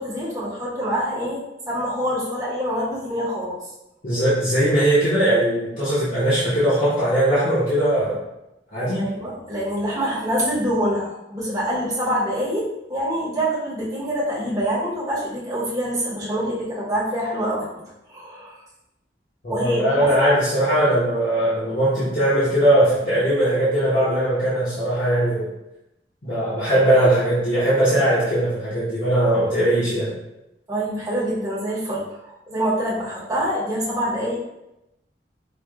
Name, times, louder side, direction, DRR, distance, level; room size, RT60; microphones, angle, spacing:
voice 1, 0.0-3.6 9.0-17.7 18.1-18.6 19.5-20.1 30.7-34.4, equal, 20° right, -8 dB, 1.1 m, -25 dB
voice 2, 4.0-8.2 8.7-9.1 19.4-25.5 26.2-30.1, right 1 dB, 50° left, -11 dB, 1.0 m, -20 dB
4.9 x 2.3 x 2.4 m, 0.91 s
head